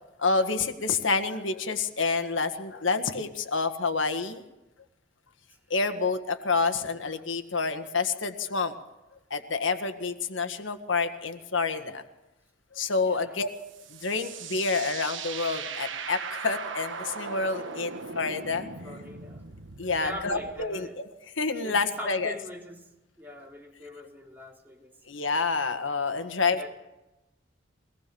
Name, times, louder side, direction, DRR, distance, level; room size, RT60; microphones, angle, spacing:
voice 1, 0.2-4.4 5.7-8.7 9.3-12.0 12.7-13.5 13.9-18.7 19.8-21.1 21.4-22.3 25.1-26.7, left 4 dB, 85° left, 8 dB, 1.7 m, -28 dB
voice 2, 13.0-13.4 18.8-19.4 19.9-21.0 21.6-22.9 23.2-25.0 26.6-26.7, left 1 dB, 10° right, -1 dB, 3.9 m, -42 dB
sound 1, 13.5-20.7, right 5 dB, 80° right, 1.4 m, -39 dB
24.0 x 19.0 x 7.0 m, 0.98 s
head